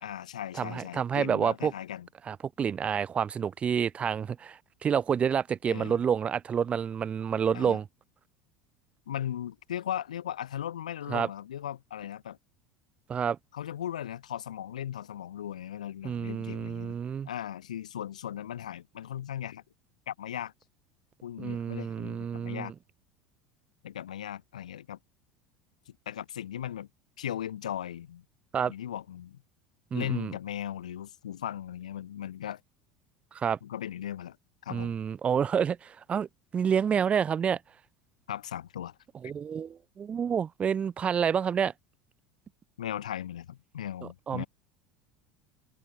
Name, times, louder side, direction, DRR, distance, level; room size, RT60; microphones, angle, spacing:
voice 1, 0.0-2.1 5.7-6.0 7.5-7.8 9.1-12.4 13.5-17.0 17.3-19.6 20.1-20.5 21.2-22.7 23.8-25.0 25.9-26.9 27.2-28.2 28.6-29.4 29.9-32.6 33.6-34.4 34.6-35.0 38.3-39.0 42.8-44.5, left 10 dB, 85° left, 3.4 m, -37 dB
voice 2, 0.6-1.7 2.3-7.8 11.1-11.3 13.1-13.4 16.0-17.3 21.4-22.7 28.5-28.7 29.9-30.3 33.3-33.6 34.7-36.3 36.5-37.6 39.2-41.7 44.3-44.4, right 7 dB, 35° right, 2.1 m, -28 dB
hypercardioid pair, 80°, 4 cm